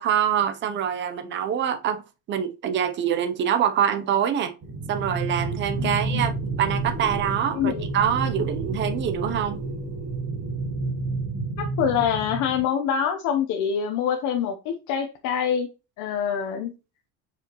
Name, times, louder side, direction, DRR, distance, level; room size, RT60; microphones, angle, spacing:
voice 1, 0.0-2.0 2.3-4.5 4.9-6.3 6.6-9.6, right 9 dB, 30° right, 0.7 m, -25 dB
sound 1, 4.6-12.6, right 3 dB, 65° right, 2.9 m, -30 dB
voice 2, 5.8-6.2 7.5-7.8 11.6-15.7 16.0-16.7, left 8 dB, 55° left, 0.9 m, -25 dB
7.4 x 5.0 x 3.0 m
cardioid pair, 170°, 36 cm